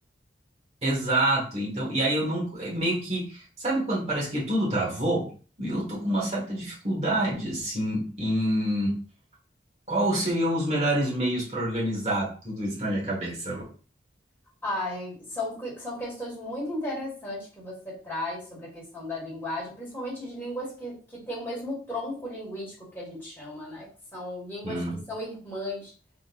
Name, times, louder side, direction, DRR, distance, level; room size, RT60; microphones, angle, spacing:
voice 1, 0.8-5.3 5.6-9.0 9.9-13.7 24.6-25.0, right 1 dB, 35° right, -5 dB, 1.5 m, -27 dB
voice 2, 14.6-25.9, left 1 dB, 10° left, -7 dB, 1.9 m, -35 dB
3.8 x 3.1 x 2.5 m, 0.39 s
head